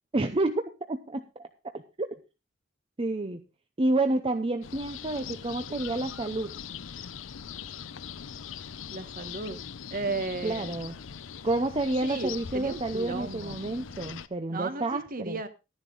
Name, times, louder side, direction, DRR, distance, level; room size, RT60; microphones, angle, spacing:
voice 1, 0.1-0.5 0.8-1.5 1.7-2.1 3.0-3.4 3.8-6.5 10.4-11.0 11.4-15.4, right 2 dB, 30° right, 7 dB, 0.7 m, -29 dB
sound 1, 4.6-14.3, left 7 dB, 85° left, 0.6 m, -41 dB
voice 2, 8.9-9.6 9.9-10.7 12.0-13.6 14.5-15.5, right 3 dB, 45° right, 10 dB, 1.4 m, -35 dB
12.5 x 10.5 x 3.9 m, 0.29 s
head